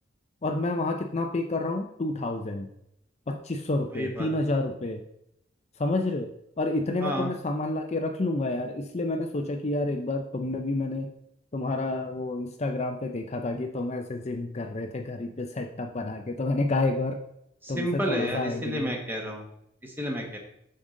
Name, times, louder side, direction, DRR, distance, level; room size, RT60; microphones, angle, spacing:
voice 1, 0.4-2.7 3.3-5.0 5.8-6.3 6.6-11.1 11.5-17.2 17.7-18.9, left 2 dB, 35° left, 4 dB, 0.5 m, -29 dB
voice 2, 3.9-4.3 7.0-7.3 17.6-19.5 19.8-20.4, equal, 10° right, 1 dB, 1.4 m, -30 dB
7.4 x 6.6 x 3.8 m, 0.77 s
head